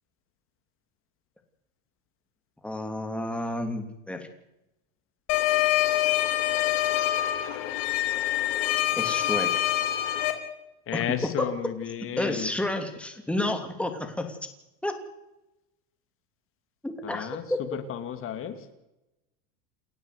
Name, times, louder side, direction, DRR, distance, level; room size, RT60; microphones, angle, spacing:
voice 1, 2.6-4.3 8.9-9.6 10.9-11.5 12.2-14.4 14.8-15.0 16.8-17.6, left 1 dB, 5° left, 5 dB, 2.9 m, -30 dB
sound 1, 5.3-10.3, left 13 dB, 60° left, 3.7 m, -25 dB
voice 2, 10.9-12.5 17.0-17.4 17.7-18.7, left 9 dB, 35° left, 8 dB, 2.9 m, -33 dB
29.5 x 12.5 x 8.3 m, 0.92 s
supercardioid pair, 140°, 37 cm